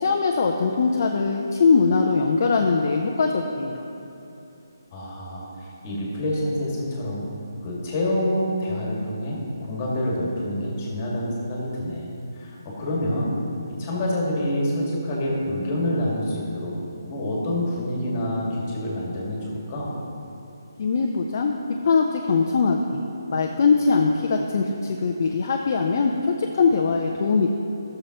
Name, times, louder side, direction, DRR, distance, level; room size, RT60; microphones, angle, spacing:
voice 1, 0.0-3.8 20.8-21.5 21.8-23.0 23.3-26.1 26.4-27.5, left 4 dB, 40° left, 1 dB, 0.5 m, -21 dB
voice 2, 4.9-7.2 7.6-12.1 12.3-13.4 13.8-16.7 17.1-19.9, left 1 dB, 25° left, -4 dB, 1.9 m, -27 dB
13.0 x 6.8 x 2.9 m, 2.8 s
hypercardioid pair, 165°, 2 cm